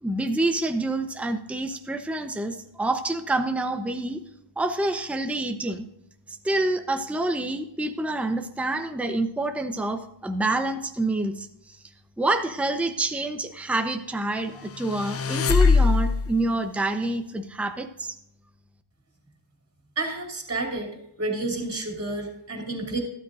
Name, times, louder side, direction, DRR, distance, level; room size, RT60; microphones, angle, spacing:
voice 1, 0.0-4.2 4.6-5.9 6.3-11.8 12.2-18.2, right 2 dB, 5° right, 6 dB, 0.8 m, -27 dB
Transition M Acc, 14.6-16.4, left 5 dB, 30° left, 0.5 m, -21 dB
voice 2, 20.0-20.9 21.2-23.0, right 2 dB, 30° right, 0 dB, 2.8 m, -30 dB
12.5 x 12.5 x 2.5 m, 0.78 s
wide cardioid pair, 105°, 50 cm